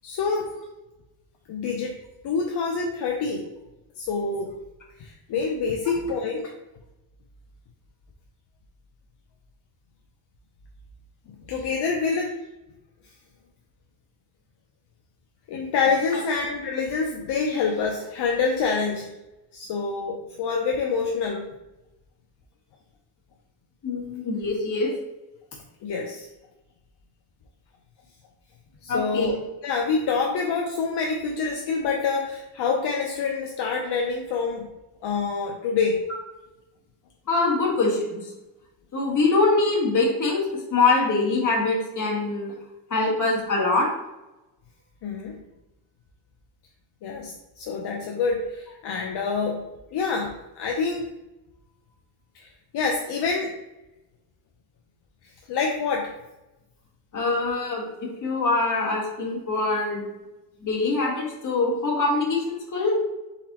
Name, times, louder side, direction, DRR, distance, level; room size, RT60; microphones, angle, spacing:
voice 1, 0.0-0.5 1.5-2.0 2.2-3.5 4.0-4.5 5.0-6.5 11.5-12.4 15.5-19.1 19.5-21.5 25.8-26.3 28.8-34.7 35.0-36.0 45.0-45.4 47.0-51.0 52.3-52.5 52.7-53.5 55.5-56.1, left 4 dB, 65° left, 1 dB, 0.7 m, -26 dB
voice 2, 23.8-24.9 28.9-29.4 37.3-38.3 38.9-42.5 42.9-43.9 57.1-60.0 60.6-62.9, left 3 dB, 45° left, -1 dB, 1.4 m, -24 dB
4.2 x 4.0 x 2.9 m, 0.97 s
cardioid pair, 90°, 42 cm